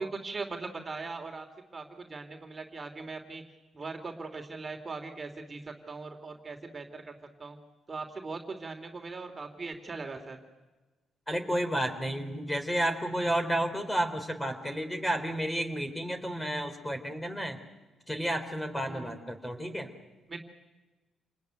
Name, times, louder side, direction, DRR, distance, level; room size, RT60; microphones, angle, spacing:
voice 1, 0.0-1.5 1.7-3.4 3.7-7.6 7.9-10.4 18.9-19.1 20.3-20.4, right 3 dB, 30° right, 4 dB, 2.9 m, -40 dB
voice 2, 11.3-17.6 18.1-19.9, right 1 dB, 10° left, 7 dB, 3.5 m, -31 dB
28.0 x 20.0 x 9.3 m, 1.2 s
cardioid pair, 90°, 0 cm